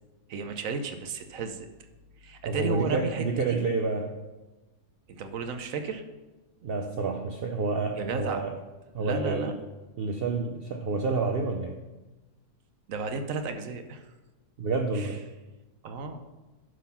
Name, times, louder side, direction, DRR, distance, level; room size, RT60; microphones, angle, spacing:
voice 1, 0.3-1.7 2.2-3.7 5.1-6.0 7.9-8.5 9.0-9.5 12.9-14.1 14.9-15.1 15.8-16.2, right 4 dB, 65° right, 7 dB, 1.0 m, -33 dB
voice 2, 2.5-4.2 6.6-8.5 8.9-9.6 10.0-11.8 14.6-15.2, right 3 dB, 85° right, 4 dB, 0.5 m, -29 dB
11.0 x 3.9 x 5.6 m, 1.1 s
omnidirectional pair, 1.7 m